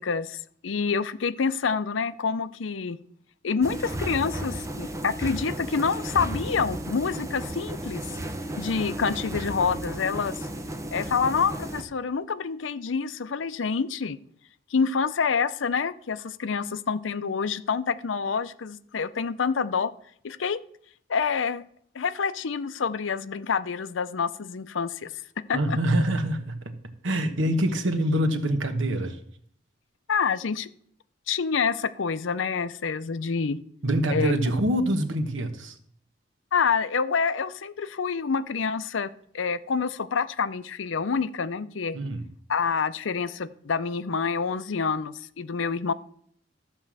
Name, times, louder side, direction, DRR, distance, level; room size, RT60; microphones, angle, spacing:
voice 1, 0.0-3.0 3.4-8.0 8.6-10.5 10.9-14.2 14.7-19.9 20.2-20.6 21.1-21.6 21.9-25.1 25.5-25.8 30.1-30.7 31.3-33.6 34.1-34.3 36.5-39.1 39.3-42.0 42.5-45.9, left 5 dB, 80° left, 14 dB, 0.6 m, -27 dB
sound 1, 3.6-11.8, right 1 dB, 15° right, 0.9 m, -34 dB
voice 2, 25.5-26.8 27.0-29.2 33.8-35.8 41.9-42.2, right 1 dB, 85° right, 8 dB, 1.2 m, -25 dB
13.0 x 4.4 x 7.4 m, 0.63 s
head